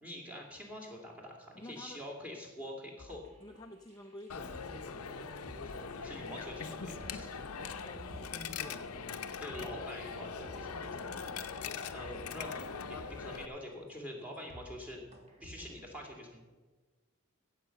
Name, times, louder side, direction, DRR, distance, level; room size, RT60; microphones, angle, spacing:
voice 1, 0.0-3.2 6.0-7.4 9.4-11.0 11.9-15.0 15.4-16.4, left 1 dB, 5° right, 0 dB, 2.3 m, -45 dB
voice 2, 1.6-2.0 3.4-6.4 7.8-9.4, left 1 dB, 20° left, 3 dB, 0.6 m, -50 dB
sound 1, 3.0-8.5 8.9-9.0 9.3-9.8 10.1-10.2 10.4-10.9 11.4-11.5 11.7-13.6 14.0-14.1 14.3-14.8 15.1-15.9, left 1 dB, 30° right, 1.7 m, -54 dB
Coin (dropping), 4.3-13.5, left 5 dB, 85° left, 0.7 m, -41 dB
15.5 x 7.6 x 5.8 m, 1.3 s
head